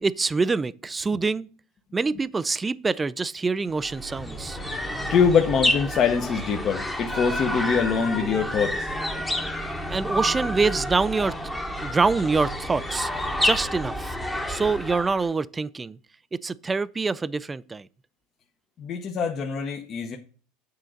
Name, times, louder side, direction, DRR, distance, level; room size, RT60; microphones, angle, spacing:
voice 1, 0.0-1.5 1.9-4.6 9.9-11.4 11.8-14.2 14.5-16.0 16.4-17.9, right 4 dB, 15° right, 0.3 m, -25 dB
sound 1, 3.7-15.3, left 1 dB, 5° left, 1.0 m, -29 dB
voice 2, 5.1-8.9 18.8-20.2, left 6 dB, 35° left, 0.9 m, -24 dB
8.2 x 3.8 x 6.4 m
supercardioid pair, 130°, 0 cm